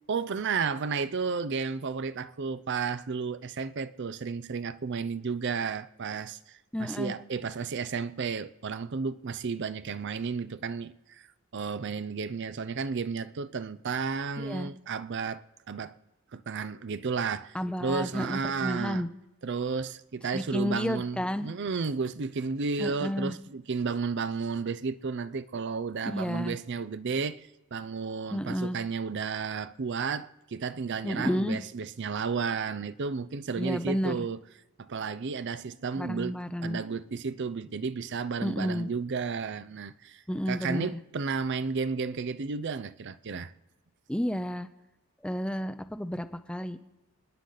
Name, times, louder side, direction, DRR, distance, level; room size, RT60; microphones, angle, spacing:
voice 1, 0.1-11.3 11.5-15.9 16.3-19.0 19.4-34.4 34.8-36.4 36.6-43.5, right 5 dB, 55° right, 0.5 m, -32 dB
voice 2, 6.7-7.2 14.4-14.7 17.5-19.1 20.3-21.5 22.8-23.4 26.0-26.6 28.3-28.8 31.0-31.6 33.6-34.2 35.9-36.8 38.4-38.9 40.3-41.0 44.1-44.7 45.2-46.8, equal, 5° left, 0.6 m, -31 dB
27.5 x 9.9 x 3.9 m
head